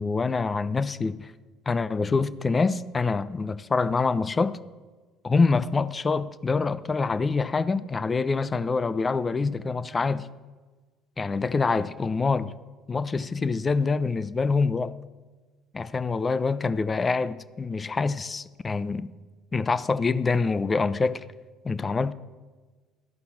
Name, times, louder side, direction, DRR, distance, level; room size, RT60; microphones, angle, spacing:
voice 1, 0.0-1.3 1.7-4.6 5.2-10.3 11.2-12.5 12.9-15.0 15.7-19.1 19.5-21.2 21.6-22.1, left 4 dB, 30° left, 0.5 m, -25 dB
13.0 x 5.8 x 7.1 m
hypercardioid pair, 60°, 0 cm